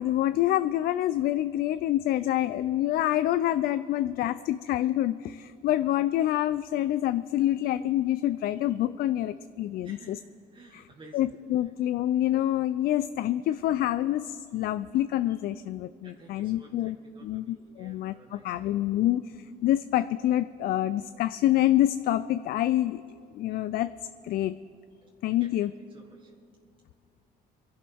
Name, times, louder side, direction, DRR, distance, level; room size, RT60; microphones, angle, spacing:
voice 1, 0.0-10.0 10.7-10.8 11.1-17.0 17.2-23.0 23.3-23.9 24.2-24.5 25.2-25.7, left 13 dB, 65° left, 13 dB, 0.4 m, -27 dB
voice 2, 9.8-11.4 16.0-18.8 25.0-25.1 25.4-26.3, right 2 dB, 30° right, -2 dB, 1.6 m, -53 dB
24.0 x 11.5 x 3.5 m, 2.3 s
cardioid pair, 110°, 17 cm